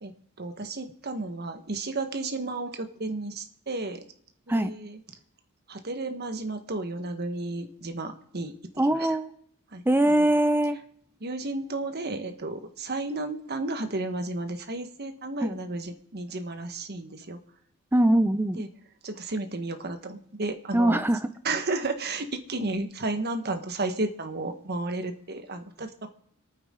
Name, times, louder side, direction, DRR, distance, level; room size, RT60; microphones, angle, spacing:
voice 1, 0.0-4.0 4.5-5.0 5.7-8.5 8.8-9.2 9.7-10.3 11.2-17.4 18.6-18.7 19.0-21.0 21.4-26.1, right 2 dB, 50° right, 7 dB, 1.4 m, -33 dB
voice 2, 8.8-9.3 9.9-10.8 15.4-15.6 17.9-18.6 20.7-21.3, right 1 dB, 10° right, 11 dB, 0.6 m, -22 dB
25.5 x 9.5 x 3.8 m, 0.68 s
head